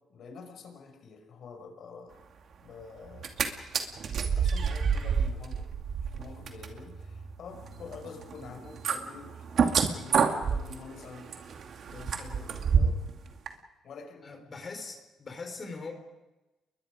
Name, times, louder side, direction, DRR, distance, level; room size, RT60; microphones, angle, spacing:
voice 1, 0.1-2.2 2.6-3.4 4.2-5.7 6.1-11.3 11.9-13.0 13.8-14.3, left 5 dB, 65° left, 5 dB, 5.5 m, -47 dB
sound 1, 3.1-3.5 3.7-13.1 13.5-13.6, right 6 dB, 60° right, 2.4 m, -29 dB
voice 2, 14.2-15.9, left 4 dB, 40° left, 4 dB, 4.6 m, -41 dB
29.5 x 22.0 x 5.1 m, 1.1 s
cardioid pair, 90°, 0 cm